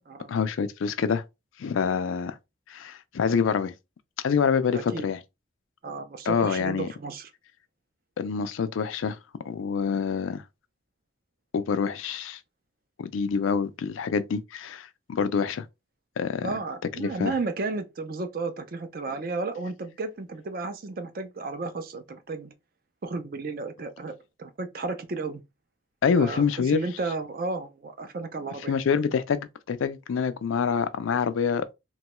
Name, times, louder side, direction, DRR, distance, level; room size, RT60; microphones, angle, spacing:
voice 1, 0.3-1.2 1.6-2.4 2.7-3.7 4.2-5.2 6.3-6.9 8.2-9.2 9.5-10.4 11.5-12.4 13.0-15.6 16.2-16.5 17.0-17.3 26.0-26.8 28.7-31.7, left 6 dB, 90° left, 0.4 m, -26 dB
voice 2, 4.7-5.1 5.8-7.3 16.4-22.5 23.0-24.1 24.4-25.4 26.1-28.7, right 3 dB, 45° right, 0.4 m, -33 dB
3.0 x 2.3 x 2.9 m
head